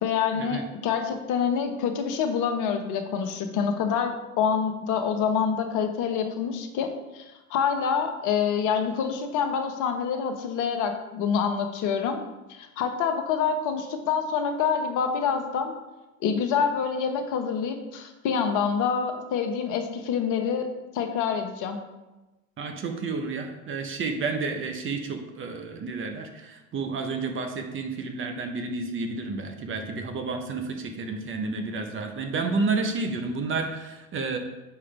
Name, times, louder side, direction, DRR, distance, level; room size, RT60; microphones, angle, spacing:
voice 1, 0.0-7.2 7.5-12.2 12.5-15.7 16.2-20.7 20.9-21.8, left 6 dB, 45° left, 6 dB, 1.0 m, -26 dB
voice 2, 22.6-34.4, right 4 dB, 30° right, 5 dB, 0.9 m, -30 dB
6.7 x 4.9 x 3.4 m, 1.1 s
hypercardioid pair, 95°, 41 cm